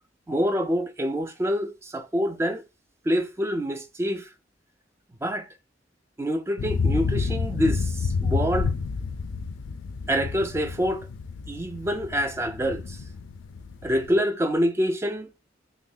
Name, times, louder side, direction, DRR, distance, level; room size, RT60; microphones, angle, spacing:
voice 1, 0.3-2.6 3.1-4.3 5.2-5.5 6.2-8.7 10.1-11.1 11.5-13.0 13.8-15.3, equal, 15° right, 0.3 m, -26 dB
sound 1, 6.6-14.2, left 4 dB, 85° left, 0.3 m, -29 dB
3.1 x 2.2 x 3.7 m
head